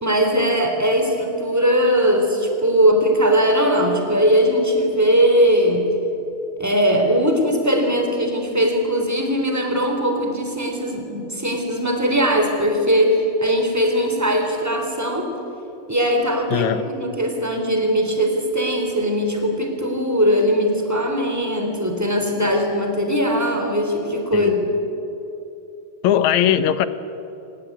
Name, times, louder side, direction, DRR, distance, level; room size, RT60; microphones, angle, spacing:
voice 1, 0.0-5.9 6.6-15.3 15.9-24.7, equal, 5° right, 3 dB, 3.4 m, -20 dB
voice 2, 16.5-16.8 24.3-24.6 26.0-26.9, left 10 dB, 80° left, 13 dB, 2.4 m, -19 dB
24.5 x 19.5 x 9.3 m, 2.9 s
omnidirectional pair, 3.3 m